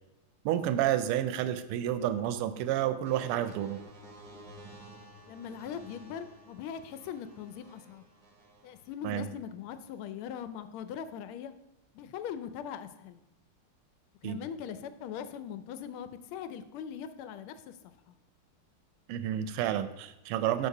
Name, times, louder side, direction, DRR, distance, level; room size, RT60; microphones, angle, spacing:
voice 1, 0.4-3.8 9.0-9.3 14.2-14.4 19.1-20.7, right 11 dB, 85° right, 11 dB, 1.5 m, -30 dB
sound 1, 3.0-9.1 9.8-10.1, right 1 dB, 35° right, 0.5 m, -53 dB
voice 2, 5.3-8.0 8.6-11.5 11.9-13.2 14.2-17.7 18.1-18.2, left 8 dB, 80° left, 11 dB, 1.5 m, -41 dB
6.5 x 5.4 x 4.7 m, 0.95 s
omnidirectional pair, 2.4 m